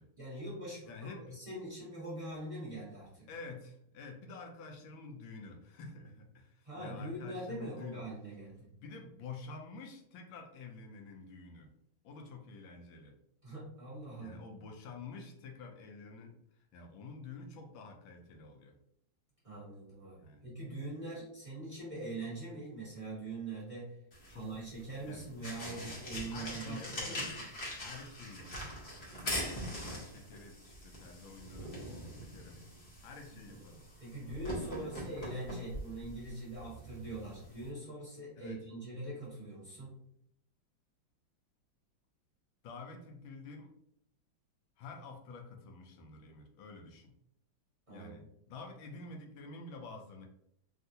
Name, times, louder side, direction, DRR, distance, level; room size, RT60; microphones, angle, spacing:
voice 1, 0.2-3.3 6.6-8.7 13.4-14.4 19.4-23.9 24.3-27.3 33.3-33.6 34.0-39.9 47.9-48.1, right 2 dB, 20° right, -8 dB, 0.9 m, -43 dB
voice 2, 0.8-1.4 3.3-8.0 8.7-11.7 12.0-13.1 14.2-18.7 20.1-20.4 24.3-24.5 25.1-25.3 26.3-27.3 27.8-28.8 29.5-32.6 33.0-33.8 34.8-34.9 38.4-38.6 42.6-43.7 44.8-47.1 47.9-50.3, left 4 dB, 75° left, 3 dB, 1.3 m, -49 dB
sound 1, 24.1-37.7, equal, 45° left, 0.9 m, -43 dB
3.5 x 2.4 x 2.6 m, 0.73 s
omnidirectional pair, 2.3 m